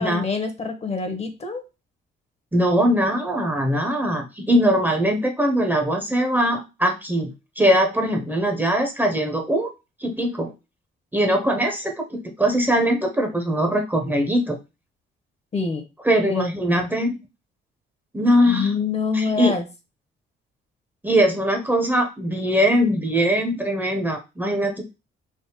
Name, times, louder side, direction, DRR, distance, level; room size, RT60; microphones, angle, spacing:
voice 1, 0.0-1.6 15.5-15.8 16.3-16.5 18.5-19.7, left 4 dB, 30° left, 7 dB, 0.7 m, -26 dB
voice 2, 2.5-9.7 10.0-10.5 11.1-14.6 16.0-17.2 18.1-18.7 19.1-19.5 21.0-24.8, equal, 10° right, 2 dB, 0.6 m, -21 dB
3.4 x 2.0 x 2.8 m, 0.27 s
cardioid pair, 90°, 20 cm